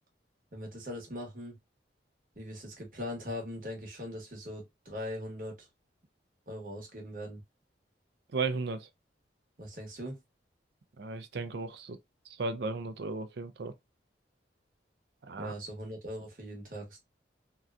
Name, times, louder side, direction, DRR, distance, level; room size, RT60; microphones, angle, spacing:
voice 1, 0.5-1.6 2.4-5.7 6.5-7.4 9.6-10.2 15.4-17.0, left 1 dB, 45° right, 1.0 m, -40 dB
voice 2, 8.3-8.9 11.0-12.0 12.3-13.7 15.2-15.5, right 3 dB, 65° right, 0.4 m, -35 dB
2.7 x 2.2 x 2.3 m
head